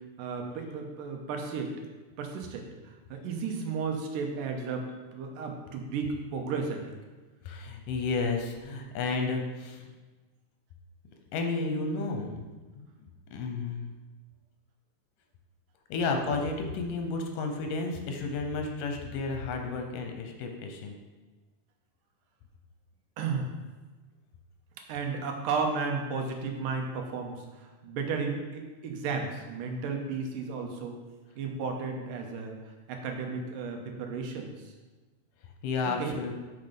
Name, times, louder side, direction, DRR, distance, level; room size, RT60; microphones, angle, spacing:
voice 1, 0.0-1.8 2.2-6.9 23.2-23.5 24.9-31.0 31.4-32.6 32.9-34.7 36.0-36.1, right 4 dB, 90° right, 3 dB, 2.6 m, -34 dB
voice 2, 7.5-9.9 11.3-12.4 12.7-12.9 13.3-13.9 15.9-20.9 35.6-36.3, left 3 dB, 80° left, 3 dB, 2.5 m, -32 dB
6.7 x 5.7 x 5.2 m, 1.3 s
omnidirectional pair, 3.8 m